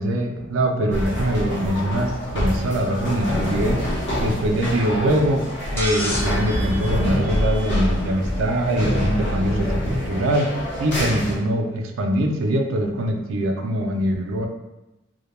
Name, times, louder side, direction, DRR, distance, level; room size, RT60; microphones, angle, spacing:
voice 1, 0.0-3.8 4.2-5.4 5.7-10.5 10.8-14.5, right 1 dB, 85° right, 3 dB, 0.4 m, -23 dB
sound 1, 0.9-11.3, left 1 dB, 60° left, 0.8 m, -26 dB
sound 2, 5.8-8.1 9.6-9.7 10.9-11.0, equal, 10° left, 0.5 m, -31 dB
2.1 x 2.1 x 2.9 m, 0.97 s
head